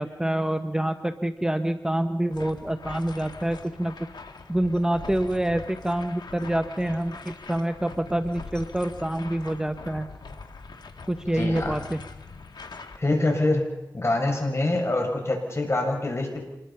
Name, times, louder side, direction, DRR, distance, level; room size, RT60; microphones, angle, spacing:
voice 1, 0.0-3.9 4.5-10.1 11.1-12.0, right 1 dB, 10° right, 8 dB, 1.0 m, -26 dB
Mining Machine Work Fantasy, 2.3-13.0, left 4 dB, 70° left, 1.8 m, -42 dB
voice 2, 11.3-11.8 13.0-13.6 13.9-16.4, left 2 dB, 35° left, 2 dB, 6.3 m, -25 dB
26.5 x 21.5 x 5.7 m, 0.99 s
wide cardioid pair, 70°, 8 cm